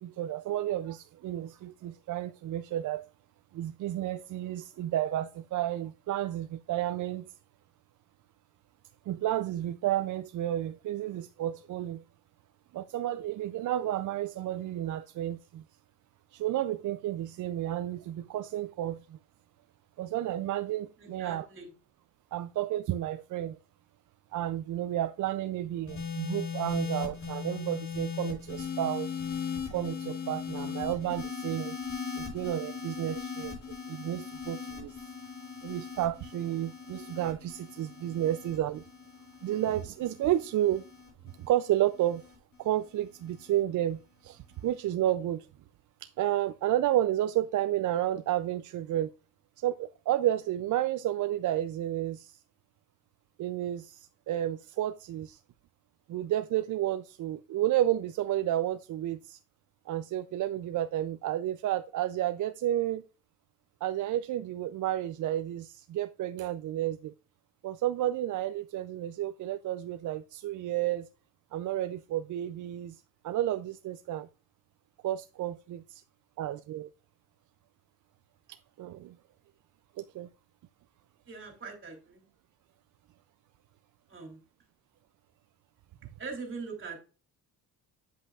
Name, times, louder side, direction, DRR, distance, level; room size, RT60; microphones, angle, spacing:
voice 1, 0.0-3.0 3.5-7.4 9.1-12.0 12.7-15.6 16.3-19.2 20.0-21.5 22.3-23.6 24.3-29.2 29.7-31.8 32.2-35.0 35.6-38.8 39.4-40.9 41.2-42.2 42.6-45.5 46.0-49.1 49.6-52.4 53.4-55.4 56.1-59.4 59.9-63.1 63.8-67.1 67.6-71.1 71.5-74.3 75.0-76.0 76.4-76.9 78.5-79.1 80.0-80.3, right 12 dB, 55° right, 0.5 m, -31 dB
voice 2, 21.0-21.7 81.3-82.2 84.1-84.4 86.2-87.0, right 4 dB, 35° right, 3.1 m, -42 dB
sound 1, 25.9-42.4 43.3-43.6, left 6 dB, 50° left, 4.4 m, -39 dB
8.4 x 7.7 x 2.4 m
cardioid pair, 135°, 36 cm